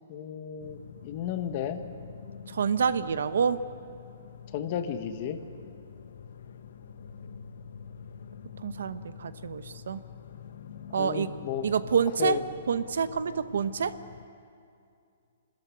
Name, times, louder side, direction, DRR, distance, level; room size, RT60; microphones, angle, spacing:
voice 1, 0.1-1.8 4.5-5.4 10.9-11.7 12.2-12.4, left 9 dB, 30° left, 9 dB, 1.1 m, -33 dB
sound 1, 0.6-14.2, left 7 dB, 65° left, 1.1 m, -46 dB
voice 2, 2.5-3.6 8.6-10.0 10.9-11.3 11.6-12.4 12.7-13.9, right 6 dB, 75° right, 13 dB, 0.9 m, -27 dB
26.0 x 13.0 x 9.7 m, 2.4 s
hypercardioid pair, 170°, 0 cm